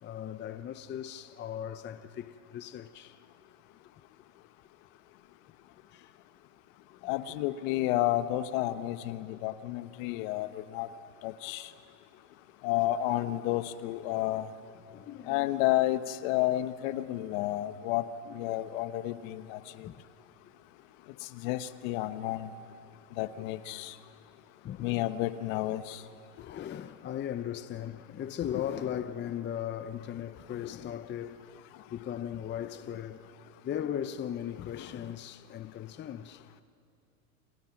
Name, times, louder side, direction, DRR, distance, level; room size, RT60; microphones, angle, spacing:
voice 1, 0.0-3.2 5.9-6.1 7.0-7.1 14.9-15.5 18.3-18.6 19.8-20.0 21.1-21.3 24.6-25.0 26.4-31.4 31.9-33.3 33.6-36.4, left 10 dB, 25° left, 0.7 m, -38 dB
voice 2, 7.0-10.9 11.2-11.7 12.6-14.5 15.3-18.0 18.3-19.9 21.3-22.5 23.2-23.9 24.8-26.0, left 15 dB, 55° left, 1.4 m, -31 dB
30.0 x 27.5 x 6.0 m
hypercardioid pair, 110°, 47 cm